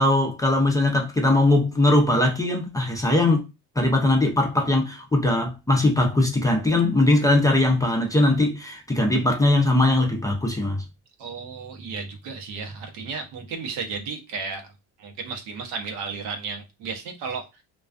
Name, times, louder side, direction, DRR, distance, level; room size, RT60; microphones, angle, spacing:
voice 1, 0.0-3.4 3.8-10.8, left 2 dB, 10° left, 0.4 m, -20 dB
voice 2, 11.2-14.7 15.0-17.6, right 5 dB, 85° right, 0.8 m, -34 dB
2.3 x 2.2 x 2.4 m
cardioid pair, 120°, 39 cm